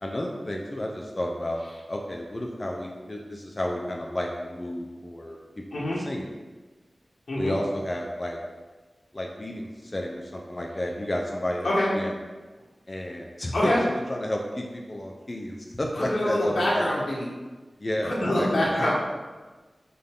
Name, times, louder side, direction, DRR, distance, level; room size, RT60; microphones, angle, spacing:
voice 1, 0.0-1.6 1.9-5.4 5.7-6.3 7.4-8.4 9.1-12.1 12.9-13.7 14.1-16.8 17.8-18.7, left 1 dB, 35° left, 0 dB, 0.8 m, -31 dB
voice 2, 16.0-17.2 18.0-18.9, left 1 dB, 80° left, -6 dB, 1.8 m, -25 dB
9.2 x 4.2 x 3.8 m, 1.3 s
wide cardioid pair, 75°, 0 cm